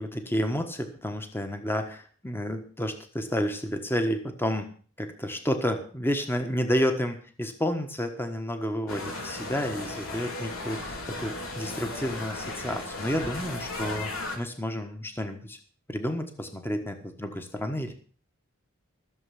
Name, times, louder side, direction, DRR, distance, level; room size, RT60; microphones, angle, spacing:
voice 1, 0.0-4.7 5.0-15.6 15.9-17.9, equal, 10° left, 6 dB, 1.3 m, -30 dB
sound 1, 8.9-14.4, left 2 dB, 80° left, 3.1 m, -36 dB
15.0 x 7.2 x 7.2 m, 0.43 s
head